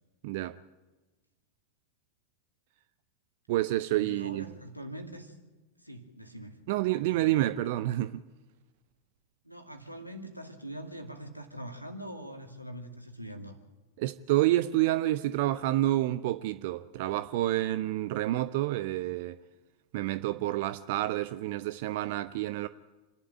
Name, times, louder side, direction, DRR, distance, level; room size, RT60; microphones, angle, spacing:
voice 1, 0.2-0.6 3.5-4.5 6.7-8.2 14.0-19.4 19.9-22.7, right 15 dB, 50° right, 0.6 m, -28 dB
voice 2, 3.9-5.3 5.8-6.6 7.0-7.5 9.4-13.6, equal, 90° right, 2.3 m, -43 dB
28.0 x 11.5 x 9.0 m
figure-of-eight pair, 90°, 0 cm